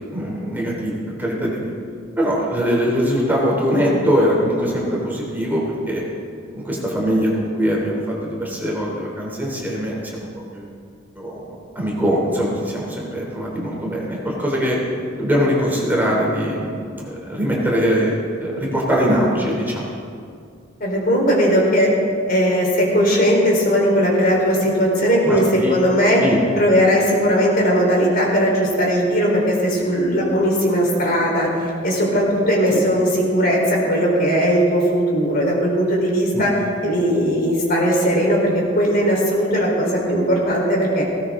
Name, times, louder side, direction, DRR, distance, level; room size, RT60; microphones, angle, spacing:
voice 1, 0.1-1.7 2.2-6.0 6.5-10.3 10.5-10.7 11.1-11.4 11.7-14.8 15.2-16.7 17.0-18.1 18.4-19.8 25.2-25.8 26.2-26.4 32.7-32.9 36.3-36.5, equal, 10° right, -4 dB, 3.3 m, -22 dB
voice 2, 20.8-21.9 22.3-25.4 25.7-26.2 26.6-36.5 36.8-41.0, equal, 50° left, -2 dB, 4.2 m, -18 dB
19.0 x 17.5 x 3.8 m, 2.3 s
head